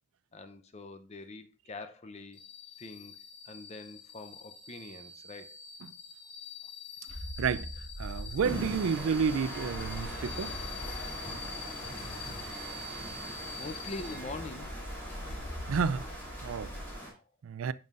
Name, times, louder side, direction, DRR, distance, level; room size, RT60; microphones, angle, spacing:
voice 1, 0.3-2.4 2.8-3.1 3.4-5.6 8.1-8.4 13.6-14.8 16.5-17.3, left 2 dB, 35° left, 0.6 m, -45 dB
sound 1, 2.3-14.1, left 4 dB, 50° left, 1.7 m, -46 dB
sound 2, 7.1-16.9, equal, 90° left, 1.9 m, -43 dB
voice 2, 7.4-7.7 8.0-10.6 15.7-16.0 16.4-16.7 17.4-17.7, right 6 dB, 85° right, 0.4 m, -30 dB
sound 3, 8.4-17.1, equal, 10° left, 2.8 m, -41 dB
9.3 x 5.5 x 2.4 m
head